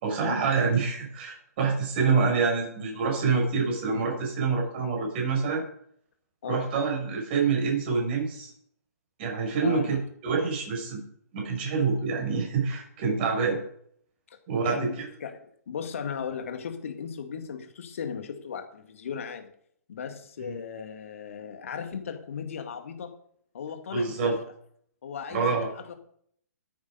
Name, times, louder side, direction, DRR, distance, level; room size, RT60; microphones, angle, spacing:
voice 1, 0.0-5.6 6.5-8.5 9.2-11.0 11.3-13.6 14.5-15.0 20.4-20.5 23.9-24.4 25.3-25.7, right 5 dB, 35° right, 1 dB, 6.7 m, -26 dB
voice 2, 9.6-9.9 14.3-14.4 14.7-19.5 19.9-23.1 23.5-24.3 25.0-26.0, left 7 dB, 50° left, 6 dB, 2.0 m, -37 dB
14.0 x 9.4 x 5.3 m, 0.66 s
figure-of-eight pair, 125°, 9 cm